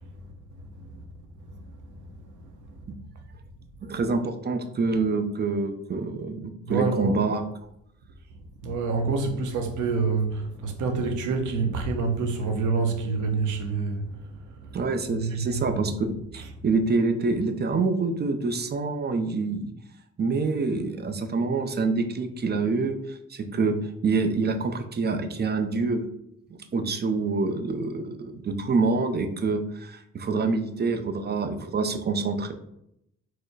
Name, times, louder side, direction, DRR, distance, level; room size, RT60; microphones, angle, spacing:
voice 1, 1.6-2.6 6.7-7.2 8.6-14.8 15.1-15.8 16.3-16.5, right 4 dB, 75° right, 0.9 m, -28 dB
voice 2, 3.8-7.4 14.7-15.9 16.3-19.7 20.2-23.7 24.0-26.0 26.5-32.5, right 4 dB, 35° right, 0.6 m, -26 dB
4.5 x 2.2 x 4.6 m
cardioid pair, 90°, 30 cm